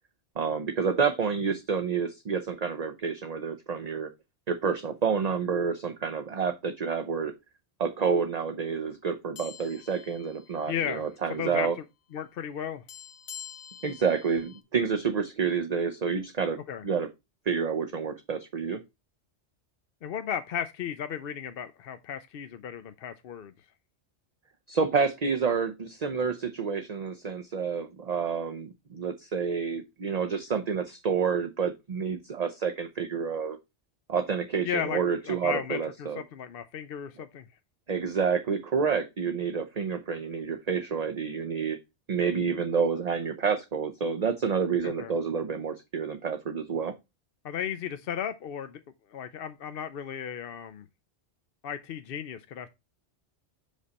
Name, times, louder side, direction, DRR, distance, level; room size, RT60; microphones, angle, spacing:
voice 1, 0.4-4.1 4.5-7.3 7.8-11.7 13.8-16.6 16.8-17.1 17.5-18.8 24.7-33.6 34.1-36.2 37.9-41.8 42.1-46.9, right 6 dB, 40° right, 0.7 m, -29 dB
sound 1, 9.4-11.0 11.3-11.5 12.9-14.6, left 9 dB, 90° left, 1.2 m, -47 dB
voice 2, 10.7-11.1 11.4-11.7 12.1-12.8 16.7-16.8 20.0-23.5 34.6-37.5 44.8-45.1 47.4-48.8 49.1-50.8 51.6-52.7, left 8 dB, 60° left, 0.8 m, -35 dB
6.4 x 5.1 x 4.1 m
omnidirectional pair, 1.2 m